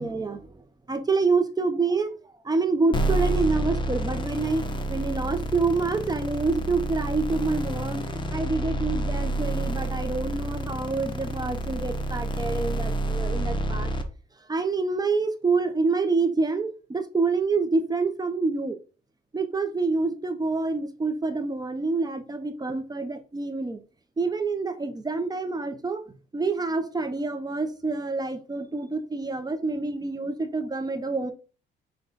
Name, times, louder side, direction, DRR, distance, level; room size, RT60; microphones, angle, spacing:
voice 1, 0.0-2.1 2.4-13.9 14.5-18.8 19.3-23.8 24.2-26.0 26.3-31.3, right 3 dB, 20° right, 0.6 m, -27 dB
sound 1, 2.9-14.0, right 1 dB, 25° left, 0.7 m, -29 dB
5.3 x 2.2 x 4.0 m
cardioid pair, 90°, 20 cm